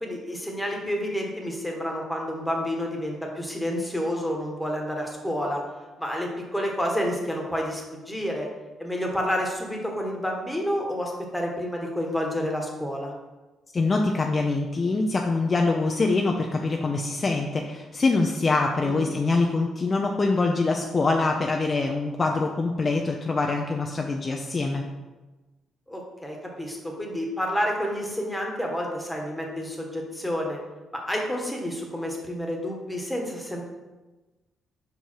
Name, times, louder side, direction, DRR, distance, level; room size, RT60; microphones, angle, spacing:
voice 1, 0.0-5.6 6.0-8.5 8.8-13.1 18.8-19.1 25.9-30.6 30.9-33.6, equal, 5° left, 0 dB, 1.4 m, -29 dB
voice 2, 13.7-24.8, left 3 dB, 35° left, 2 dB, 0.6 m, -24 dB
5.3 x 4.7 x 4.5 m, 1.2 s
cardioid pair, 90°, 0 cm